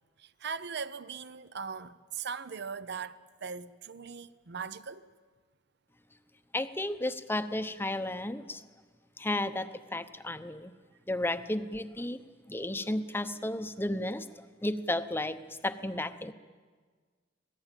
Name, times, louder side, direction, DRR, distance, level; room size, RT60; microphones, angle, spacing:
voice 1, 0.2-5.1, right 6 dB, 60° right, 0.8 m, -40 dB
voice 2, 6.5-8.6 9.2-10.7 11.1-12.2 12.5-15.4 15.6-16.3, left 1 dB, 10° left, 0.8 m, -33 dB
26.5 x 18.5 x 9.1 m
head